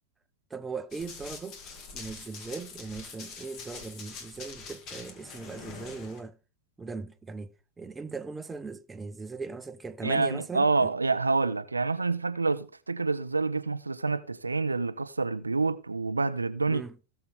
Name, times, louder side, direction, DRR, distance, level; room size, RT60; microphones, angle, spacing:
voice 1, 0.5-1.6 1.9-6.4 6.8-10.9 16.7-17.0, right 4 dB, 15° right, 0.9 m, -39 dB
Run, 0.9-6.2, left 5 dB, 40° left, 2.4 m, -44 dB
voice 2, 10.0-16.8, right 3 dB, 85° right, 0.6 m, -27 dB
17.5 x 6.8 x 3.5 m
figure-of-eight pair, 90°, 0 cm